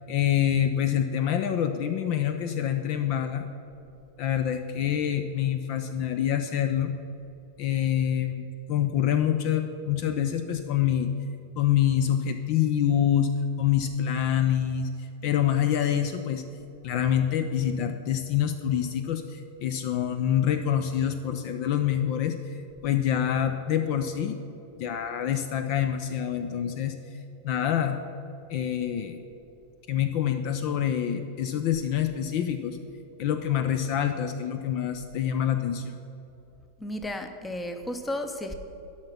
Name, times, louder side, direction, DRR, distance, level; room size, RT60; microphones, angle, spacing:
voice 1, 0.1-3.4 4.2-6.9 7.6-8.4 8.7-11.1 11.6-13.3 13.6-16.4 16.8-22.6 22.8-24.4 24.8-27.0 27.4-28.0 28.5-29.2 29.9-32.8 33.2-36.0, left 10 dB, 45° left, 8 dB, 0.5 m, -26 dB
voice 2, 36.8-38.5, left 1 dB, 10° left, 7 dB, 0.8 m, -33 dB
11.5 x 5.8 x 6.0 m, 2.8 s
figure-of-eight pair, 90°, 0 cm